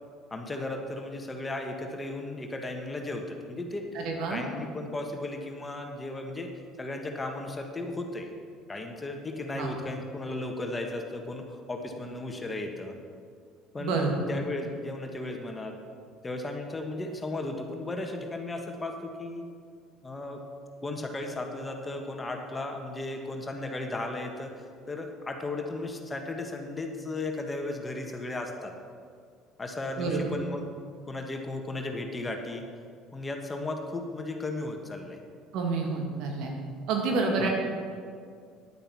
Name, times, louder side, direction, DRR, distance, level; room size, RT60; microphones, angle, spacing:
voice 1, 0.3-4.0 4.3-6.5 6.8-8.3 8.7-12.9 13.7-14.0 14.3-15.7 16.2-19.4 20.0-20.4 20.8-24.5 24.9-28.7 29.6-30.6 31.1-32.6 33.1-35.2 37.4-37.5, left 2 dB, 20° left, 3 dB, 1.5 m, -35 dB
voice 2, 3.9-4.4 9.5-9.8 13.8-14.1 30.0-30.2 35.5-36.5 36.9-37.5, right 4 dB, 65° right, 1 dB, 2.0 m, -28 dB
9.9 x 8.8 x 6.0 m, 2.2 s
hypercardioid pair, 65°, 0 cm